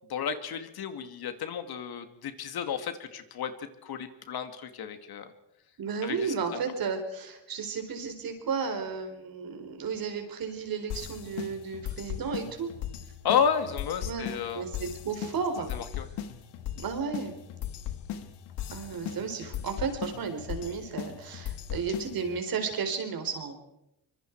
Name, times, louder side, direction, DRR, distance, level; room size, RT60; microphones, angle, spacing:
voice 1, 0.1-5.3 6.0-6.6 13.2-14.6 15.7-16.1, left 7 dB, 70° left, 9 dB, 2.2 m, -32 dB
voice 2, 5.8-12.7 14.0-14.3 14.5-15.7 16.0-16.1 16.8-17.3 18.7-23.6, right 5 dB, 60° right, 6 dB, 4.3 m, -33 dB
sound 1, 10.9-22.4, left 10 dB, 90° left, 1.7 m, -38 dB
25.0 x 23.0 x 4.7 m, 0.86 s
cardioid pair, 105°, 40 cm